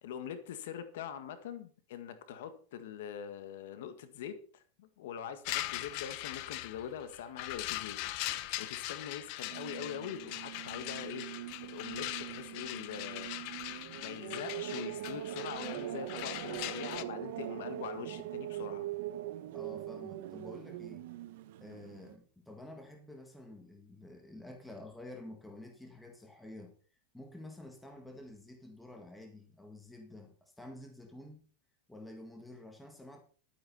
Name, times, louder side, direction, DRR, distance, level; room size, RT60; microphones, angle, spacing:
voice 1, 0.0-8.0 8.6-11.3 11.6-13.3 14.0-18.9, left 8 dB, 70° left, 1.8 m, -43 dB
sound 1, 5.4-17.0, left 16 dB, 45° left, 0.9 m, -41 dB
sound 2, 9.5-22.2, right 14 dB, 60° right, 1.3 m, -42 dB
voice 2, 19.5-21.1 21.6-26.7 27.1-31.5 31.9-33.2, left 1 dB, 5° left, 1.8 m, -50 dB
12.5 x 9.2 x 5.5 m
supercardioid pair, 160°, 0 cm